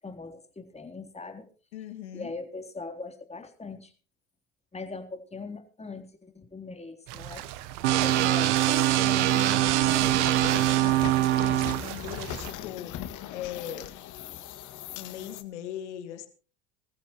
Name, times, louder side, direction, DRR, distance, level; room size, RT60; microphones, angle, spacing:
voice 1, 0.0-1.5 2.1-3.9 4.7-7.5 7.9-10.4, left 3 dB, 20° left, 5 dB, 3.5 m, -40 dB
voice 2, 1.7-2.3 11.2-14.0 14.9-16.3, left 10 dB, 90° left, 7 dB, 2.4 m, -40 dB
sound 1, 7.1-12.5, right 14 dB, 70° right, 1.2 m, -38 dB
sound 2, 7.8-11.8, right 15 dB, 90° right, 1.1 m, -23 dB
sound 3, 8.0-15.4, left 11 dB, 60° left, 2.1 m, -40 dB
21.0 x 15.0 x 3.1 m, 0.36 s
hypercardioid pair, 85°, 34 cm